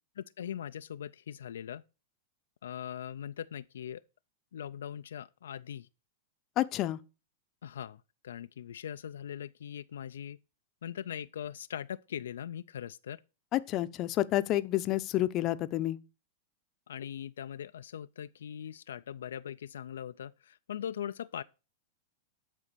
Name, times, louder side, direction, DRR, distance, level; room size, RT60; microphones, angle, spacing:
voice 1, 0.2-1.8 2.6-4.0 4.5-5.9 7.6-8.0 8.2-10.4 10.8-13.2 16.9-21.4, left 9 dB, 85° left, 0.4 m, -40 dB
voice 2, 6.6-7.0 13.5-16.0, left 15 dB, 40° left, 0.7 m, -29 dB
11.0 x 4.1 x 6.7 m
hypercardioid pair, 130°, 0 cm